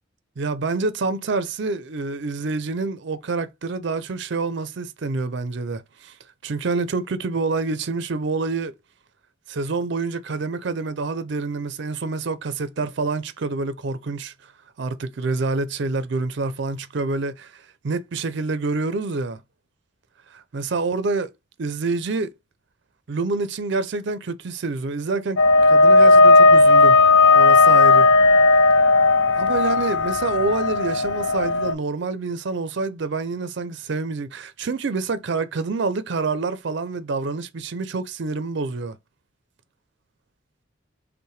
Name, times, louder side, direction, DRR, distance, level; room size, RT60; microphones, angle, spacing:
voice 1, 0.4-6.1 6.4-8.7 9.5-14.3 14.8-19.4 20.3-21.3 21.6-22.3 23.1-25.4 25.7-27.0 27.3-28.1 29.4-39.0, right 3 dB, 55° right, 0.4 m, -27 dB
sound 1, 25.4-31.7, left 3 dB, 60° left, 0.4 m, -15 dB
5.4 x 2.1 x 3.1 m
head